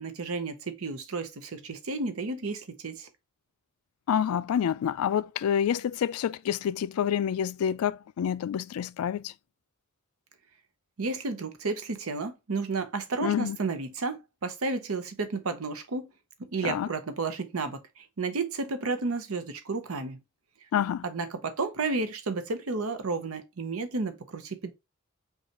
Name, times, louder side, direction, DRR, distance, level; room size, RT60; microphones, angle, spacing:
voice 1, 0.0-3.1 11.0-16.1 16.4-20.2 21.0-24.7, right 3 dB, 80° right, 0.8 m, -32 dB
voice 2, 4.1-9.3 13.2-13.6 16.6-16.9 20.7-21.0, left 9 dB, 85° left, 0.3 m, -28 dB
5.3 x 2.4 x 2.9 m
head